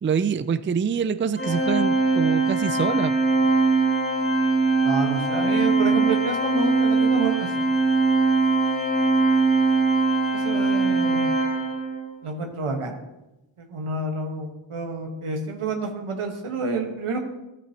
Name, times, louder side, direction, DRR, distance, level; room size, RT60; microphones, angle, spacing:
voice 1, 0.0-3.1, right 6 dB, 25° right, 13 dB, 0.4 m, -25 dB
Organ, 1.4-12.1, right 3 dB, 25° left, 2.2 m, -21 dB
voice 2, 4.8-7.5 10.3-11.3 12.2-13.0 13.6-17.2, right 3 dB, 90° right, 3 dB, 1.4 m, -29 dB
13.0 x 8.4 x 2.9 m, 0.97 s
cardioid pair, 40°, 49 cm